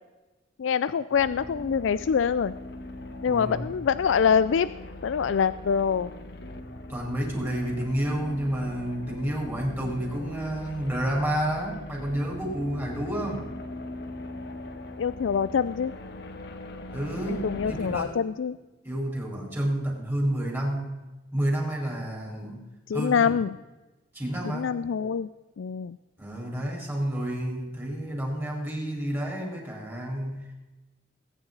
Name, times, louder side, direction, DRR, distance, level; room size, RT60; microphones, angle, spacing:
voice 1, 0.6-2.5 3.2-4.7 5.0-6.1 15.0-15.9 17.3-18.6 22.9-23.6 24.5-25.3 25.6-26.0, left 6 dB, 80° left, 14 dB, 0.4 m, -25 dB
sound 1, 1.1-18.0, left 1 dB, 60° left, 1.4 m, -40 dB
voice 2, 3.1-3.7 6.9-13.6 16.9-18.2 18.8-22.6 22.9-23.3 24.1-24.7 26.2-30.5, right 1 dB, 15° right, -1 dB, 4.7 m, -30 dB
21.0 x 9.9 x 4.0 m, 1.1 s
head